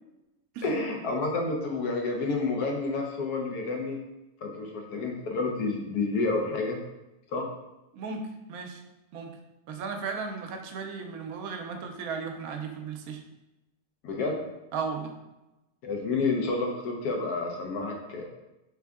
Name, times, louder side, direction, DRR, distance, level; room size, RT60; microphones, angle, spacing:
voice 1, 0.6-4.0 4.4-6.8 7.3-7.5 14.0-14.4 15.8-18.2, left 3 dB, 85° left, 1 dB, 1.2 m, -29 dB
voice 2, 7.9-8.8 9.1-9.4 9.7-13.2 14.7-15.2, right 5 dB, 75° right, 5 dB, 1.0 m, -35 dB
3.5 x 3.3 x 3.5 m, 0.98 s
omnidirectional pair, 1.6 m